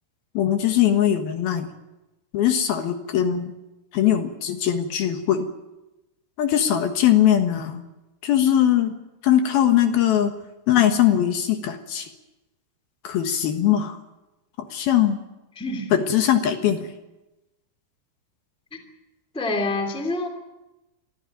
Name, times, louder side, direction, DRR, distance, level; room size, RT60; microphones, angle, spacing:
voice 1, 0.3-1.7 2.3-3.5 3.9-5.5 6.4-7.8 8.2-8.9 9.2-10.3 10.7-12.1 13.0-14.0 14.7-15.2 15.9-16.9, left 10 dB, 65° left, 6 dB, 3.1 m, -20 dB
voice 2, 15.6-15.9 18.7-18.8 19.3-20.3, left 2 dB, ahead, 4 dB, 1.9 m, -26 dB
26.5 x 14.0 x 9.2 m, 1.0 s
omnidirectional pair, 4.9 m